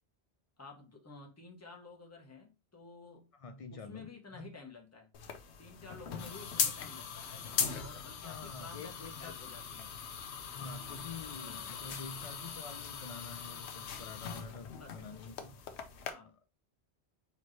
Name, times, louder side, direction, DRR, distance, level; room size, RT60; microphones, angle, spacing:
voice 1, 0.6-3.3 3.7-5.1 5.6-9.9 11.4-11.7 14.7-15.2 16.1-16.3, left 3 dB, 15° left, 0.9 m, -52 dB
voice 2, 3.4-4.5 6.2-6.3 7.9-9.4 10.5-15.7 16.2-16.3, left 4 dB, 55° left, 0.4 m, -47 dB
sound 1, 5.1-16.1, left 7 dB, 85° left, 0.9 m, -40 dB
4.4 x 2.9 x 3.1 m
omnidirectional pair, 1.1 m